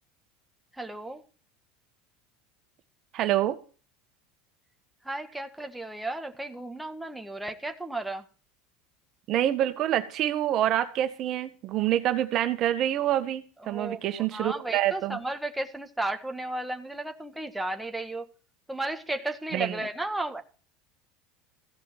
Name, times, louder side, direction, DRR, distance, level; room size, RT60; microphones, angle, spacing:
voice 1, 0.7-1.2 5.0-8.3 13.6-18.2 18.7-20.4, right 2 dB, 5° right, 5 dB, 1.7 m, -34 dB
voice 2, 3.1-3.6 9.3-15.2 19.5-19.8, right 12 dB, 50° right, 9 dB, 1.6 m, -26 dB
15.5 x 5.8 x 7.5 m, 0.39 s
hypercardioid pair, 85°, 0 cm